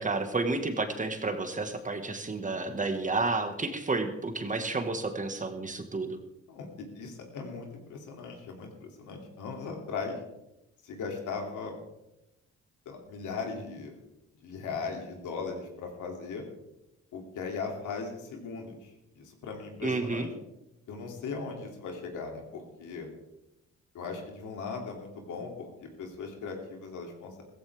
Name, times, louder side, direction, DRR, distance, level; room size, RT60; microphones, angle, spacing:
voice 1, 0.0-6.2 19.8-20.3, right 3 dB, 25° right, 7 dB, 1.7 m, -31 dB
voice 2, 6.9-10.2 10.8-11.8 12.8-13.9 14.4-16.4 17.1-20.3 20.9-23.1 23.9-27.4, left 4 dB, 80° left, 2 dB, 2.9 m, -38 dB
15.5 x 15.0 x 3.6 m, 0.90 s
cardioid pair, 90°, 30 cm